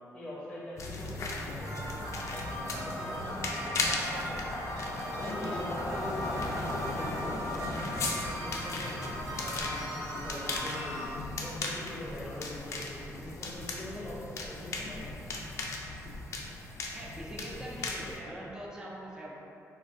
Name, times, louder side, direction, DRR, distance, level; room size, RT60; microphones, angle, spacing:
voice 1, 0.1-4.4 5.0-11.1 11.4-15.1, left 1 dB, 15° left, -7 dB, 0.9 m, -42 dB
sound 1, 0.8-18.2, left 2 dB, 55° left, 0.4 m, -37 dB
sound 2, 1.6-11.1, equal, 70° right, 0.8 m, -39 dB
voice 2, 16.9-19.3, right 1 dB, 10° right, -5 dB, 0.5 m, -42 dB
2.5 x 2.4 x 3.5 m, 2.8 s
cardioid pair, 120°, 6 cm